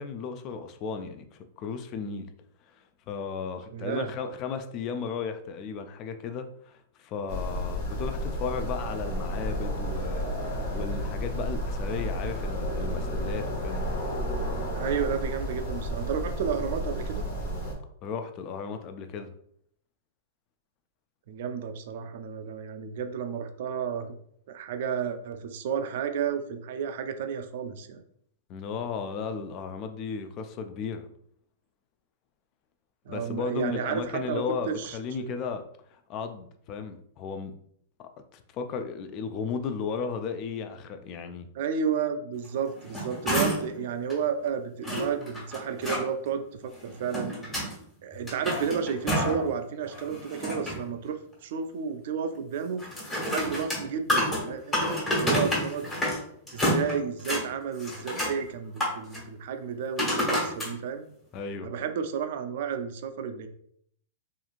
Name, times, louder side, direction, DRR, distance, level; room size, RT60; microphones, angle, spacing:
voice 1, 0.0-2.3 2.8-13.8 18.0-19.3 28.5-31.1 33.1-35.6 35.9-37.5 38.0-41.5 61.3-61.7, left 6 dB, 35° left, 0.3 m, -35 dB
voice 2, 3.7-4.1 14.7-17.2 21.3-24.1 24.5-28.0 33.1-35.3 41.5-47.6 48.0-52.8 53.2-55.9 56.5-61.1 61.6-63.5, right 7 dB, 65° right, 0.3 m, -32 dB
sound 1, 7.3-17.7, equal, 60° left, 0.9 m, -31 dB
sound 2, 42.7-43.8 44.1-44.2 44.8-46.0 46.8-47.7 48.1-49.5 49.9-50.9 52.8-56.2 56.5-57.4 57.8-58.4 58.8-59.2 60.0-60.7 61.3-61.4, equal, 15° left, 1.3 m, -29 dB
2.9 x 2.4 x 2.4 m
hypercardioid pair, 135°, 0 cm